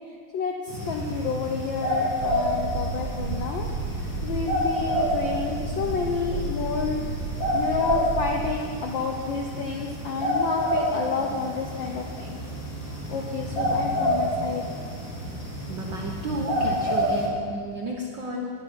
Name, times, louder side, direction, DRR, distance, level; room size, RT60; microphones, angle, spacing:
voice 1, 0.3-3.7 4.2-7.0 7.5-12.4 13.1-14.6, left 5 dB, 70° left, 1 dB, 1.1 m, -30 dB
sound 1, 0.7-17.3, equal, 40° left, 3.3 m, -29 dB
sound 2, 2.2-8.5, right 5 dB, 80° right, 1.9 m, -33 dB
voice 2, 15.7-18.5, right 1 dB, 60° right, -1 dB, 1.2 m, -32 dB
11.0 x 8.8 x 9.7 m, 2.2 s
omnidirectional pair, 3.3 m